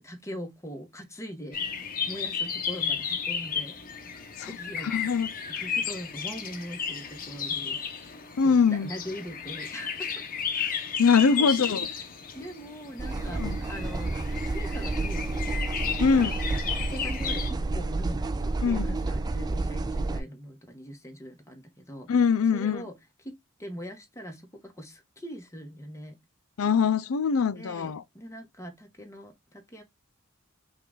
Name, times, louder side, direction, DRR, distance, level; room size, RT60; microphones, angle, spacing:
voice 1, 0.0-1.6 2.1-3.8 4.5-4.9 5.5-7.8 8.4-10.3 11.4-12.1 12.3-15.4 15.9-16.2 16.9-22.1 22.5-26.2 27.6-29.8, equal, 15° left, 1.1 m, -41 dB
sound 1, 1.5-17.5, left 7 dB, 40° left, 0.9 m, -33 dB
voice 2, 4.8-5.6 8.4-8.9 10.6-10.7 11.0-11.9 13.4-13.6 16.0-16.3 18.6-19.0 22.1-22.8 26.6-28.0, left 5 dB, 75° left, 0.5 m, -23 dB
sound 2, 13.0-20.2, right 2 dB, 20° right, 0.3 m, -30 dB
5.4 x 2.4 x 3.8 m
head